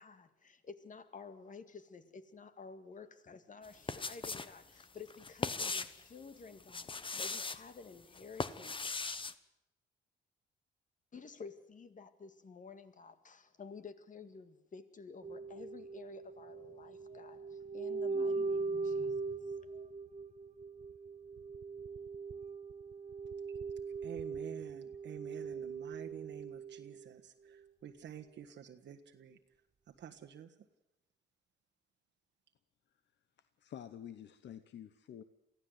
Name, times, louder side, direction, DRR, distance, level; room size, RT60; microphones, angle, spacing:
voice 1, 0.0-8.8 11.1-19.9, left 5 dB, 40° left, 10 dB, 2.0 m, -52 dB
sound 1, 3.6-4.5 4.8-6.0 6.6-7.6 8.1-9.3, left 4 dB, 25° left, 1.1 m, -39 dB
sound 2, 15.2-27.2 27.5-27.6, right 4 dB, 35° right, 0.9 m, -40 dB
voice 2, 24.0-29.4 30.0-30.5, right 9 dB, 65° right, 3 dB, 1.5 m, -49 dB
voice 3, 33.4-35.2, left 9 dB, 65° left, 12 dB, 1.0 m, -49 dB
23.5 x 15.5 x 7.9 m, 0.88 s
cardioid pair, 90°, 20 cm